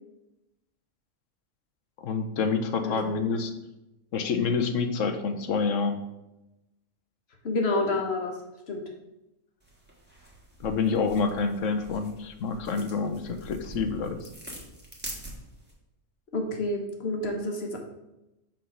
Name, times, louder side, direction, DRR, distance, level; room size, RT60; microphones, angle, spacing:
voice 1, 2.0-3.5 4.1-6.0 10.6-14.3, left 5 dB, 75° left, 7 dB, 1.1 m, -27 dB
voice 2, 2.8-3.3 7.4-8.4 8.7-8.8 13.2-13.3 16.3-17.8, left 2 dB, 55° left, 3 dB, 1.3 m, -29 dB
sound 1, 9.6-15.7, right 1 dB, 10° right, 1.4 m, -45 dB
6.0 x 3.8 x 6.1 m, 0.94 s
omnidirectional pair, 1.4 m